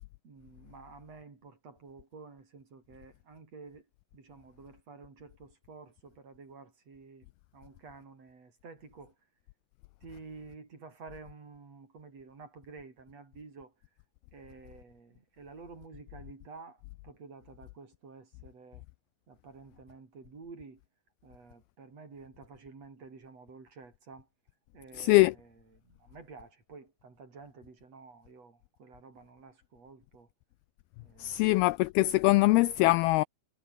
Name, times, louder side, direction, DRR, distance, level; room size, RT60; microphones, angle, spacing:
voice 1, 0.2-3.9 4.1-7.3 7.5-9.2 10.0-13.7 14.3-18.8 19.3-20.8 21.2-24.3 24.7-30.3 31.0-31.6, right 4 dB, 40° right, 5.2 m, -51 dB
voice 2, 25.0-25.3 31.2-33.2, left 20 dB, 85° left, 2.2 m, -23 dB
omnidirectional pair, 4.9 m